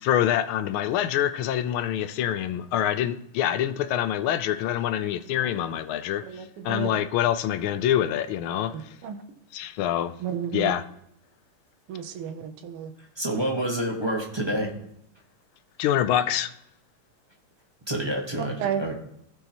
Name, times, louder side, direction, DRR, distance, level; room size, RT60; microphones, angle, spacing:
voice 1, 0.0-8.8 9.5-10.1 10.5-10.8 15.8-16.5, left 11 dB, 80° left, 1.4 m, -25 dB
voice 2, 6.2-6.9 8.7-9.2 10.2-10.7 11.9-12.9 18.6-18.8, right 8 dB, 85° right, 1.7 m, -32 dB
voice 3, 13.0-14.7 17.9-19.0, right 1 dB, 15° right, 0.9 m, -28 dB
16.0 x 5.5 x 2.9 m
omnidirectional pair, 2.4 m